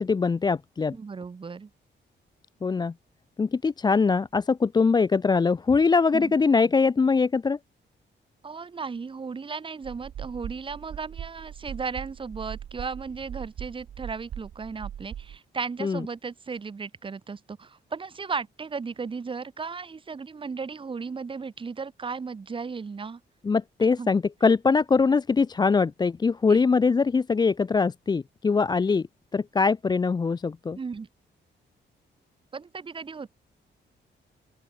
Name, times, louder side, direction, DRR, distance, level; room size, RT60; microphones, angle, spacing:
voice 1, 0.0-0.9 2.6-2.9 3.4-7.6 15.8-16.0 23.4-29.1 29.3-30.8, left 4 dB, 20° left, 0.6 m, -22 dB
voice 2, 0.9-1.7 6.1-6.3 8.4-23.2 24.0-24.1 26.5-26.6 30.8-31.1 32.5-33.3, right 5 dB, 25° right, 2.8 m, -35 dB
sound 1, 9.8-15.4, right 10 dB, 60° right, 2.2 m, -40 dB
open air
wide cardioid pair, 170°, 19 cm